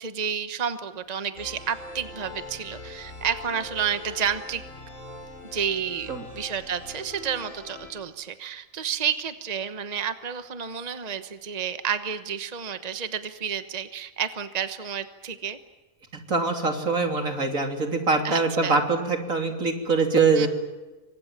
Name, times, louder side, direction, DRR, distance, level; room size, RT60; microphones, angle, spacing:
voice 1, 0.0-4.6 5.5-15.6 18.2-18.8 20.3-20.5, right 7 dB, 30° right, 10 dB, 1.2 m, -30 dB
sound 1, 1.3-7.9, left 2 dB, 65° left, 8.2 m, -42 dB
voice 2, 16.3-20.5, right 4 dB, 75° right, 4 dB, 3.6 m, -23 dB
28.0 x 25.0 x 7.5 m, 1.2 s
omnidirectional pair, 1.4 m